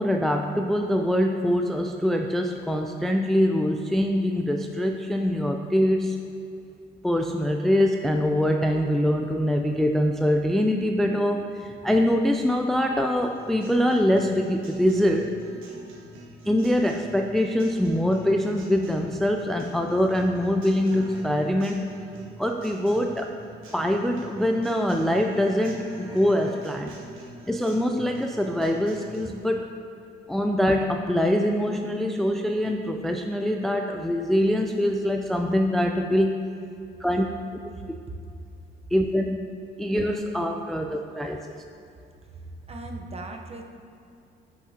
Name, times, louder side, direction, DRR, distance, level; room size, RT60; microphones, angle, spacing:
voice 1, 0.0-6.2 7.0-15.3 16.5-21.9 22.4-23.3 23.7-26.9 27.5-29.7 30.3-36.4 37.0-37.3 38.9-39.5 39.8-41.6, equal, ahead, 3 dB, 0.3 m, -24 dB
Guitar, 13.2-29.2, right 1 dB, 85° right, 1.4 m, -45 dB
voice 2, 37.7-38.2 42.2-43.6, right 2 dB, 30° right, 3 dB, 0.9 m, -39 dB
10.0 x 6.5 x 2.9 m, 2.5 s
cardioid pair, 90°, 20 cm